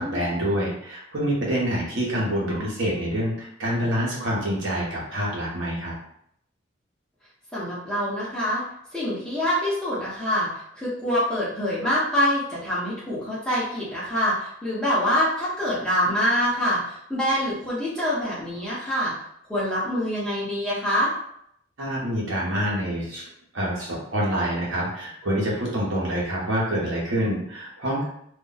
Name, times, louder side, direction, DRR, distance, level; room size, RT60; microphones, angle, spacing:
voice 1, 0.0-5.9 21.8-23.2 23.5-28.0, equal, 70° right, -4 dB, 1.0 m, -26 dB
voice 2, 7.5-8.6 8.9-10.5 10.8-19.1 19.5-21.1, equal, 5° left, -9 dB, 0.8 m, -25 dB
2.5 x 2.2 x 3.9 m, 0.72 s
head